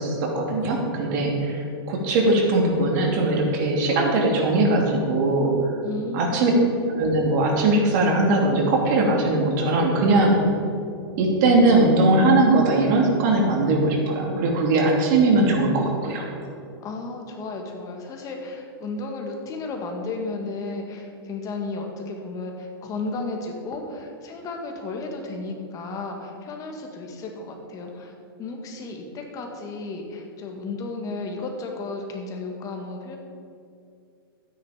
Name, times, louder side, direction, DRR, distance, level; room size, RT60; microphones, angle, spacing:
voice 1, 0.0-5.5 6.1-6.5 6.9-10.3 11.2-16.3, right 2 dB, 50° right, 0 dB, 2.8 m, -20 dB
voice 2, 5.8-6.7 16.8-28.1 28.4-33.2, left 3 dB, 25° left, 2 dB, 2.0 m, -33 dB
12.0 x 9.9 x 5.1 m, 2.5 s
hypercardioid pair, 135°, 13 cm